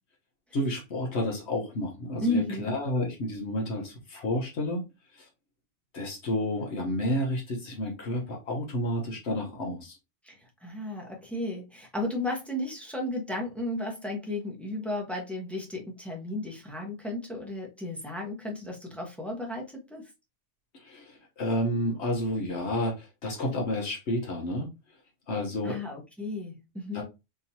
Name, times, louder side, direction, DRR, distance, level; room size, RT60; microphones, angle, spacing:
voice 1, 0.5-4.8 5.1-5.3 5.9-10.0 20.7-24.7 25.3-25.8 26.9-27.0, left 1 dB, 65° left, 1.2 m, -30 dB
voice 2, 2.2-2.7 10.2-20.1 25.6-27.0, left 1 dB, ahead, 0.8 m, -34 dB
3.6 x 2.8 x 2.7 m
omnidirectional pair, 1.3 m